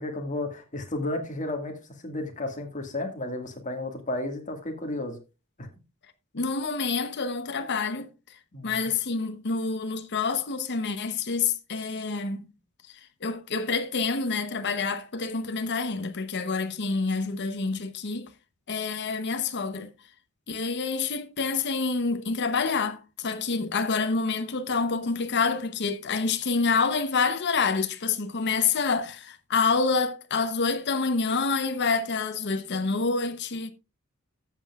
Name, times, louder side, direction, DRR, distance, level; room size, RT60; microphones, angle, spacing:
voice 1, 0.0-1.8 2.0-5.2 5.6-5.7 8.5-8.9, left 2 dB, 35° left, 1.8 m, -33 dB
voice 2, 6.3-8.1 8.6-12.5 13.2-18.3 18.7-19.9 20.5-33.7, left 4 dB, 55° left, 0.8 m, -27 dB
14.0 x 7.6 x 2.3 m
head